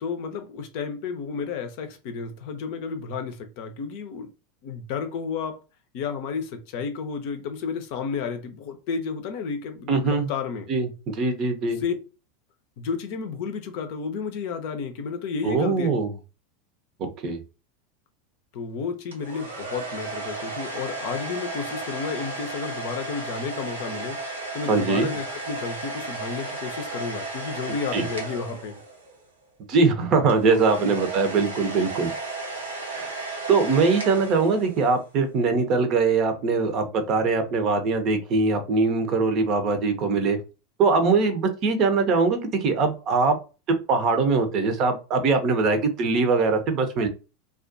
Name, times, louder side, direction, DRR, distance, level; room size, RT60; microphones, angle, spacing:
voice 1, 0.0-4.3 4.6-5.6 5.9-10.7 11.8-11.9 12.8-15.9 18.5-24.2 24.5-28.8 30.8-30.9, left 5 dB, 55° left, 0.5 m, -32 dB
voice 2, 9.9-10.3 10.7-11.8 15.4-16.1 17.0-17.4 24.7-25.1 27.9-28.0 29.7-32.1 32.9-33.1 33.5-40.4 40.8-43.4 43.9-47.1, right 4 dB, 45° right, 0.6 m, -22 dB
sound 1, 19.1-29.2 30.3-35.0, right 2 dB, 85° right, 0.8 m, -34 dB
2.4 x 2.3 x 2.5 m
figure-of-eight pair, 85°, 0 cm